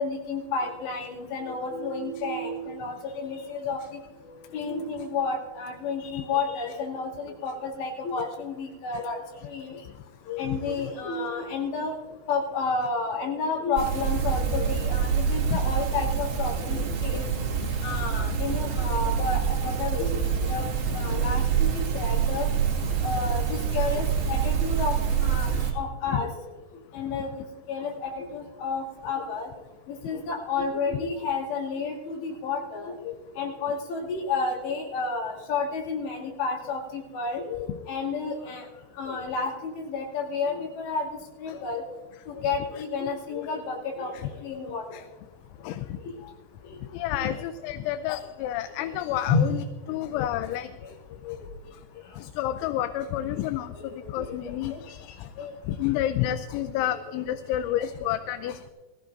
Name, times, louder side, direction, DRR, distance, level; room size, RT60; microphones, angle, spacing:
voice 1, 0.0-4.0 4.2-9.8 10.3-11.9 12.3-17.3 17.8-20.1 20.4-22.5 23.0-26.3 26.9-29.5 29.9-38.6 39.0-41.1 41.4-41.8 42.3-44.1 44.4-44.8 46.0-46.1 46.7-46.8 47.1-47.4 48.8-48.9 49.3-49.4 50.1-50.3 51.2-51.4 53.8-54.4 54.7-54.8 55.4-55.5 55.9-56.0 57.6-58.1, left 4 dB, 70° left, -1 dB, 4.5 m, -31 dB
sound 1, 13.8-25.7, right 7 dB, 45° right, 2.5 m, -26 dB
voice 2, 46.9-50.7 52.2-53.7 54.1-55.3 55.7-58.6, left 12 dB, 85° left, 10 dB, 3.0 m, -30 dB
22.0 x 15.0 x 2.6 m, 1.2 s
omnidirectional pair, 5.4 m